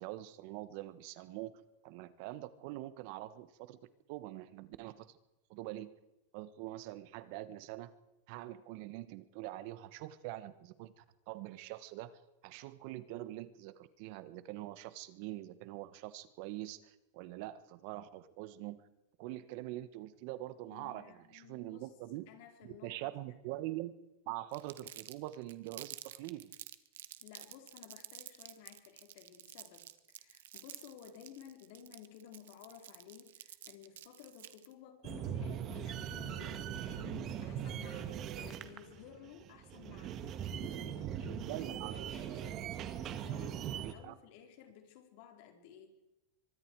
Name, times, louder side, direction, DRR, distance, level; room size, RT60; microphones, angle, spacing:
voice 1, 0.0-1.5 1.8-3.8 4.1-5.2 5.5-5.9 6.3-7.9 8.3-18.9 19.2-22.2 22.6-23.9 24.3-26.5 40.7-40.9 41.2-42.0 43.8-44.1, right 16 dB, 60° right, 14 dB, 1.4 m, -44 dB
voice 2, 20.7-21.9 22.3-23.4 27.2-42.7 43.2-45.9, left 9 dB, 60° left, 4 dB, 4.4 m, -55 dB
Crumpling crinkling, 24.5-34.7, right 12 dB, 80° right, 1.3 m, -50 dB
sound 1, 35.0-43.9, right 9 dB, 40° right, 1.8 m, -40 dB
24.0 x 23.0 x 4.8 m, 0.95 s
supercardioid pair, 125°, 0 cm